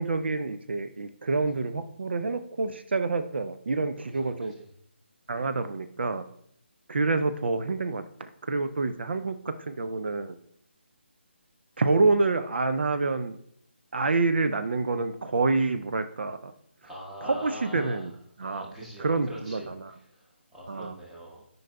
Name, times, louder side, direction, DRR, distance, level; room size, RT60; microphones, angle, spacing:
voice 1, 0.0-4.5 5.3-6.2 6.9-10.4 11.8-13.3 13.9-16.5 17.2-18.1 18.4-18.7 19.0-19.9 20.7-20.9, right 3 dB, 65° right, 9 dB, 0.4 m, -27 dB
voice 2, 4.0-4.7 16.8-18.1 18.4-19.7 20.0-21.4, equal, 5° right, -5 dB, 1.2 m, -43 dB
8.9 x 5.4 x 2.2 m, 0.71 s
figure-of-eight pair, 150°, 6 cm